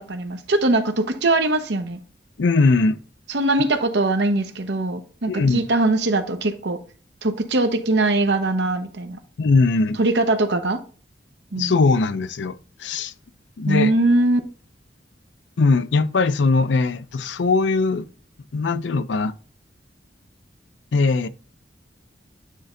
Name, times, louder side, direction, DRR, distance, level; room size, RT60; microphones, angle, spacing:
voice 1, 0.0-2.0 3.3-6.8 7.2-9.2 10.0-10.8 11.5-11.7 13.7-14.4, right 2 dB, 70° right, 0.9 m, -21 dB
voice 2, 2.4-3.0 5.3-5.6 9.4-10.0 11.6-13.1 13.6-13.9 15.6-18.0 18.5-19.3 20.9-21.3, left 3 dB, 80° left, 0.5 m, -20 dB
9.4 x 3.3 x 3.8 m
head